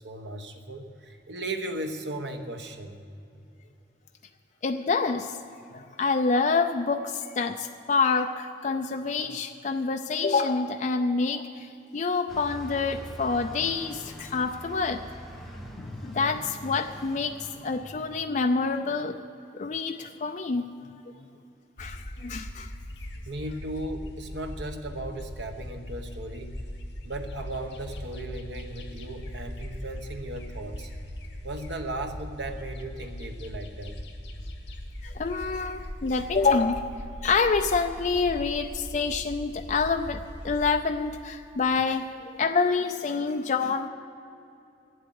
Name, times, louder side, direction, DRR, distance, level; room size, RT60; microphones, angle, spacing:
voice 1, 0.0-3.0 23.2-26.6 27.0-30.9 31.4-34.0, right 1 dB, 75° right, 5 dB, 1.2 m, -36 dB
voice 2, 4.6-5.4 5.7-15.0 15.8-19.2 19.5-20.7 21.8-22.7 35.0-36.9 37.2-42.1 42.4-43.9, left 4 dB, 40° left, 6 dB, 0.4 m, -27 dB
Bus, 12.3-18.2, equal, ahead, 1.0 m, -43 dB
sound 1, 21.8-40.7, equal, 70° left, 1.9 m, -40 dB
12.5 x 7.9 x 9.4 m, 2.7 s
head